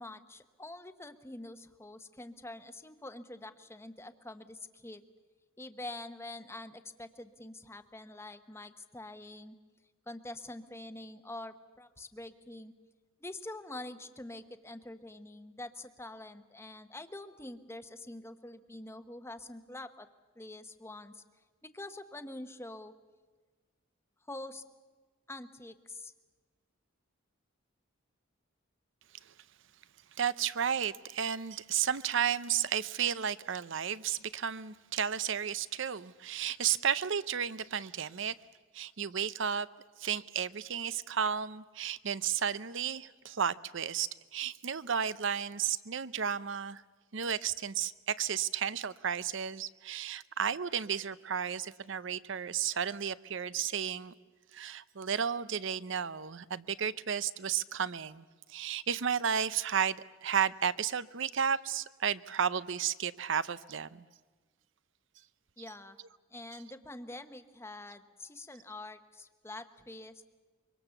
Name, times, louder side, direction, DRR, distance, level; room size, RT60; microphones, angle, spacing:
voice 1, 0.0-5.0 5.6-9.6 10.1-12.7 13.2-20.1 20.4-21.2 21.7-22.9 24.3-24.6 25.3-26.1 65.6-66.0 66.3-70.2, left 2 dB, 15° left, 1.0 m, -45 dB
voice 2, 30.2-38.3 38.7-39.7 40.0-46.8 47.1-54.1 54.5-64.0, right 8 dB, 65° right, 0.7 m, -33 dB
25.0 x 23.5 x 7.1 m
head